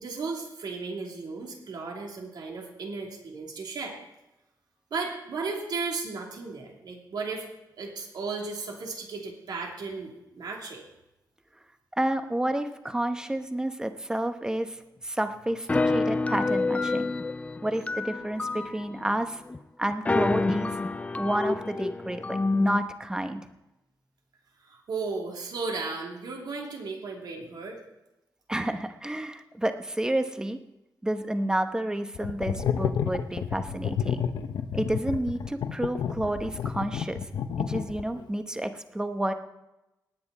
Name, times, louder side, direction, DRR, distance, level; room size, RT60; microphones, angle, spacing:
voice 1, 0.0-4.0 4.9-7.5 7.8-10.9 24.6-27.8, right 4 dB, 70° right, 0 dB, 2.9 m, -35 dB
voice 2, 12.0-17.1 17.6-19.4 19.8-20.8 21.2-23.5 28.5-30.6 31.0-34.2 34.7-37.3 37.6-39.3, right 1 dB, 10° right, 8 dB, 0.9 m, -30 dB
sound 1, 15.7-19.0 19.5-19.6 19.9-22.8, left 3 dB, 20° left, 0.4 m, -28 dB
sound 2, 32.1-38.2, left 8 dB, 85° left, 0.8 m, -30 dB
19.0 x 9.5 x 4.1 m, 0.94 s
wide cardioid pair, 135°, 7 cm